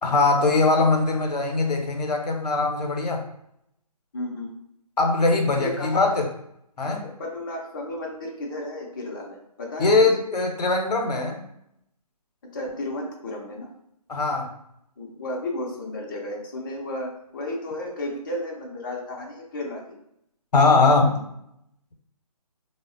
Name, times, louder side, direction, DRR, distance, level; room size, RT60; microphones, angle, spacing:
voice 1, 0.0-3.2 5.0-6.3 6.8-7.0 9.8-11.4 14.1-14.5 20.5-21.1, left 3 dB, 85° left, 3 dB, 0.7 m, -21 dB
voice 2, 4.1-4.5 5.6-6.2 6.9-9.9 12.5-13.7 15.0-20.0, left 1 dB, 30° left, -1 dB, 0.4 m, -33 dB
3.3 x 2.0 x 2.5 m, 0.77 s
figure-of-eight pair, 150°, 20 cm